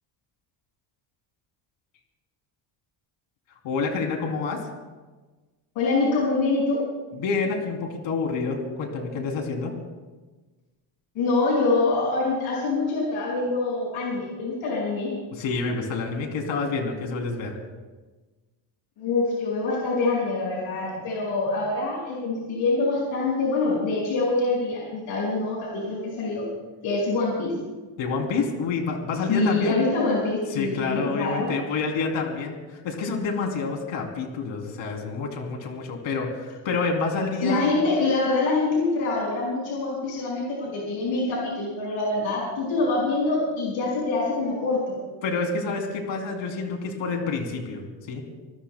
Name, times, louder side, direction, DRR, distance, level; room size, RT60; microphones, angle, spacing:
voice 1, 3.6-4.6 7.2-9.7 15.4-17.6 28.0-29.7 30.5-37.7 45.2-48.2, left 4 dB, 75° left, 1 dB, 3.2 m, -28 dB
voice 2, 5.7-6.8 11.1-15.1 19.0-26.5 26.8-27.6 29.3-31.5 37.4-45.0, left 3 dB, 90° left, -4 dB, 5.6 m, -25 dB
27.0 x 19.5 x 2.2 m, 1.3 s
cardioid pair, 160°, 47 cm